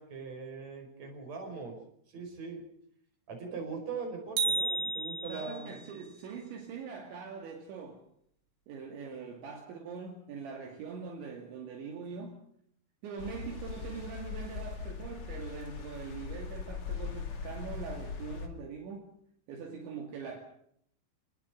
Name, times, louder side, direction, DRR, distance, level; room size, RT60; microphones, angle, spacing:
voice 1, 0.0-1.8 2.1-2.6 3.3-5.8, right 4 dB, 35° right, 3 dB, 6.2 m, -41 dB
sound 1, 4.4-5.8, right 3 dB, 50° right, 5.2 m, -32 dB
voice 2, 5.3-8.0 8.7-12.4 13.0-19.1 19.5-20.4, right 5 dB, 65° right, 2 dB, 4.4 m, -42 dB
sound 2, 13.2-18.5, left 5 dB, 45° left, 1.9 m, -40 dB
28.5 x 19.5 x 5.1 m, 0.67 s
omnidirectional pair, 5.7 m